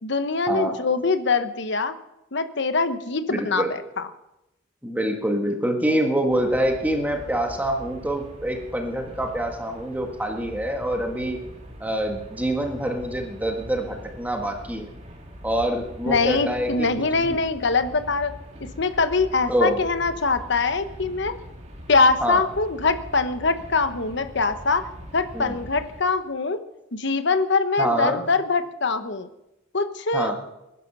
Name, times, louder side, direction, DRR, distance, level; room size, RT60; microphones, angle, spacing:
voice 1, 0.0-1.9 2.3-4.1 16.1-18.3 18.8-21.3 21.9-24.8 25.1-26.6 26.9-29.3 29.7-30.3, left 4 dB, 65° left, 9 dB, 1.1 m, -23 dB
voice 2, 3.3-3.7 4.8-11.4 11.8-14.9 15.4-16.9 17.2-17.4 19.5-19.8 22.2-22.4 25.3-25.6 27.8-28.2 30.1-30.4, right 1 dB, 10° right, 3 dB, 1.6 m, -25 dB
sound 1, 6.3-26.0, equal, 40° right, 3.0 m, -42 dB
20.5 x 11.5 x 5.6 m, 0.92 s
head